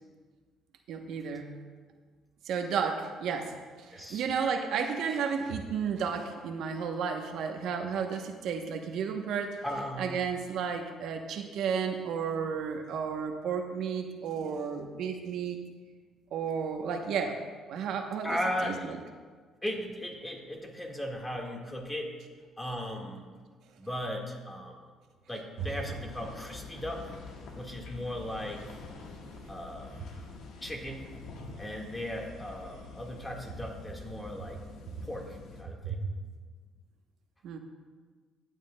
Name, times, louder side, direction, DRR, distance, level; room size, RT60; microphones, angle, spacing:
voice 1, 0.9-1.6 2.4-9.6 10.0-15.6 16.3-17.4 17.7-19.0 35.8-36.0 37.4-37.6, right 6 dB, 75° right, 4 dB, 0.8 m, -33 dB
voice 2, 3.9-4.2 9.6-10.2 18.2-18.8 19.6-22.1 22.6-23.3 23.8-24.8 25.3-27.1 27.5-28.8 29.5-30.1 30.6-31.1 31.6-34.6 35.0-35.3 35.6-36.0, equal, 10° left, 0 dB, 1.6 m, -37 dB
sound 1, 25.6-35.6, left 4 dB, 75° left, 1.3 m, -46 dB
15.5 x 9.1 x 2.2 m, 1.5 s
cardioid pair, 110°, 0 cm